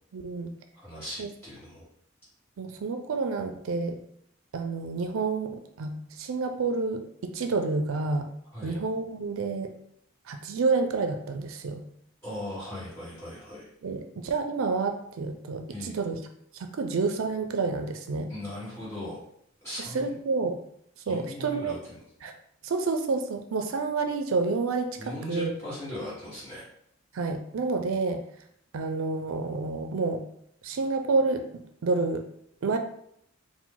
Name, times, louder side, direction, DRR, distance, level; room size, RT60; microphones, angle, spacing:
voice 1, 0.1-0.5 1.2-1.3 2.6-4.0 4.5-8.3 8.6-9.7 10.3-11.9 13.8-16.2 16.5-18.3 19.8-20.6 21.1-21.7 22.2-22.3 22.6-25.5 27.1-28.2 28.7-30.2 30.6-32.2 32.6-32.8, right 3 dB, 70° right, 6 dB, 0.4 m, -29 dB
voice 2, 0.7-1.8 8.5-8.8 12.2-13.7 15.7-15.9 18.3-19.2 19.6-20.2 21.0-22.0 25.0-26.6, left 1 dB, 10° left, -10 dB, 1.7 m, -38 dB
4.6 x 2.1 x 3.8 m, 0.70 s
head